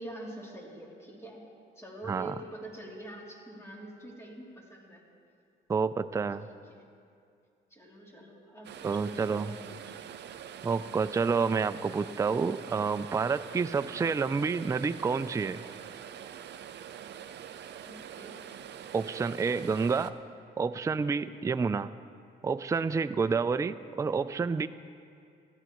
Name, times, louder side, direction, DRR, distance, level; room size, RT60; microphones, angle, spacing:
voice 1, 0.0-1.5 1.7-5.0 6.4-6.9 7.7-10.0 17.8-18.4, right 1 dB, 15° left, -3 dB, 3.0 m, -45 dB
voice 2, 5.7-6.5 8.8-9.5 10.6-15.6 18.9-20.1 20.6-21.9 22.4-24.7, right 5 dB, 15° right, 12 dB, 0.3 m, -29 dB
sound 1, 8.6-20.1, right 9 dB, 60° right, 0.6 m, -45 dB
19.0 x 14.0 x 3.1 m, 2.4 s
cardioid pair, 90°, 20 cm